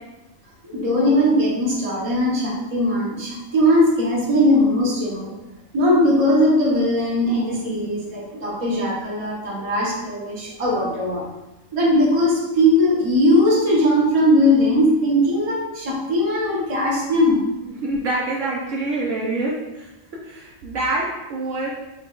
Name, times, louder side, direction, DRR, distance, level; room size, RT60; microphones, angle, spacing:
voice 1, 0.6-5.3 5.7-11.2 11.7-17.4, left 1 dB, 30° right, -4 dB, 0.9 m, -19 dB
voice 2, 17.8-19.9 20.2-21.7, right 2 dB, 65° right, -3 dB, 0.9 m, -26 dB
4.9 x 3.3 x 2.4 m, 1.0 s
omnidirectional pair, 1.5 m